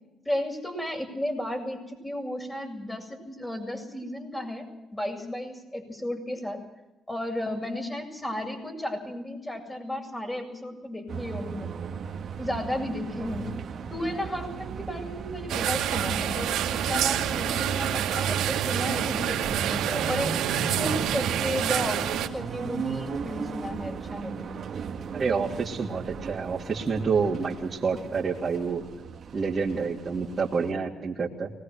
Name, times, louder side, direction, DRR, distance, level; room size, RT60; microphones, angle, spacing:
voice 1, 0.2-6.6 7.1-11.7 12.4-13.5 13.9-20.3 20.6-24.5, left 1 dB, 10° left, 3 dB, 7.6 m, -33 dB
sound 1, 11.1-30.7, right 6 dB, 55° right, 2.0 m, -37 dB
sound 2, 15.5-22.3, right 9 dB, 85° right, 2.3 m, -27 dB
voice 2, 25.1-28.8 29.3-31.5, right 5 dB, 40° right, -4 dB, 3.0 m, -28 dB
24.5 x 20.5 x 6.5 m, 0.94 s
cardioid pair, 90°, 0 cm